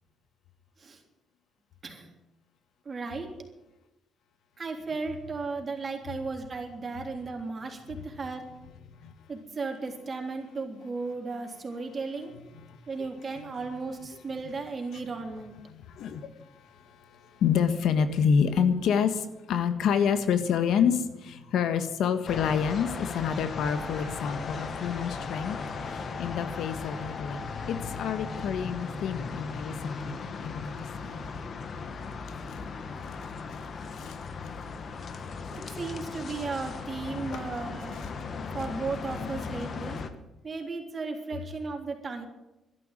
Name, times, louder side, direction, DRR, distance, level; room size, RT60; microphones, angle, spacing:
voice 1, 2.9-3.3 4.6-8.4 9.3-12.3 12.9-15.6 35.5-38.1 38.5-40.0 40.4-42.3, right 4 dB, 35° right, 3 dB, 3.5 m, -35 dB
voice 2, 15.7-25.6 25.8-27.4 27.7-30.7 34.0-34.1 37.3-37.4, left 7 dB, 75° left, 10 dB, 1.5 m, -28 dB
sound 1, 22.3-40.1, left 5 dB, 50° left, 1.5 m, -37 dB
Wind instrument woodwind instrument, 23.3-29.2, left 3 dB, 5° left, 4.8 m, -46 dB
12.5 x 11.5 x 9.1 m, 0.99 s
cardioid pair, 90°, 0 cm